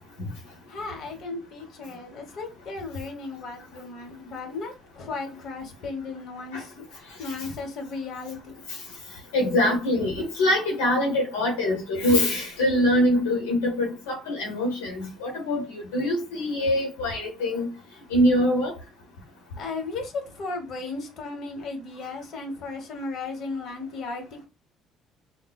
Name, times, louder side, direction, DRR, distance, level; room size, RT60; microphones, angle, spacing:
voice 1, 0.7-8.6 19.6-24.4, left 3 dB, 55° left, 1.1 m, -35 dB
voice 2, 9.3-17.7 18.1-18.7, left 1 dB, 85° left, 1.0 m, -24 dB
3.7 x 2.1 x 2.3 m
hypercardioid pair, 55°, 0 cm